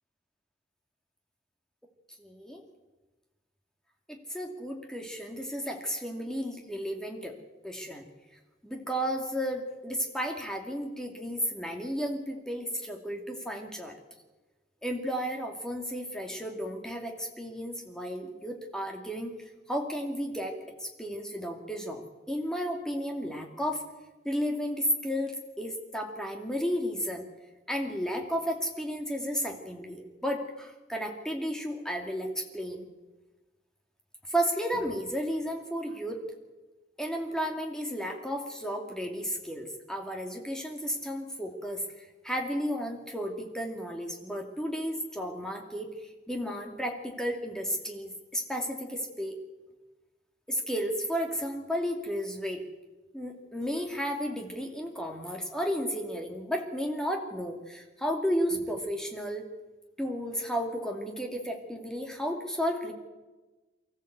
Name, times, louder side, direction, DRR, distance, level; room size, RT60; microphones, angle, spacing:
voice 1, 2.2-2.6 4.1-7.3 7.6-8.0 8.6-14.0 14.8-19.3 19.7-20.5 20.8-22.0 22.3-23.8 24.2-27.3 27.7-32.9 34.3-36.2 37.0-41.8 42.2-45.9 46.3-49.4 50.5-52.6 53.1-59.4 60.0-62.9, equal, 5° left, 2 dB, 2.4 m, -33 dB
24.0 x 14.0 x 8.1 m, 1.2 s
head